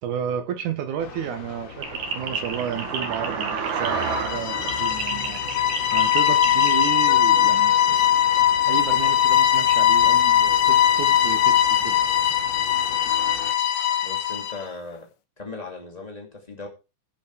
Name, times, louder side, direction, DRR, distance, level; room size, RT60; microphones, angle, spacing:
voice 1, 0.0-5.4 5.9-8.0 8.7-12.0, right 8 dB, 75° right, 1.8 m, -32 dB
sound 1, 1.0-13.5, left 5 dB, 45° left, 2.5 m, -40 dB
sound 2, 1.8-6.9, right 6 dB, 55° right, 2.6 m, -30 dB
sound 3, 3.9-14.6, left 10 dB, 70° left, 2.9 m, -20 dB
voice 2, 14.0-15.1 15.4-16.7, left 3 dB, 15° left, 1.8 m, -37 dB
16.0 x 6.0 x 4.8 m
omnidirectional pair, 5.1 m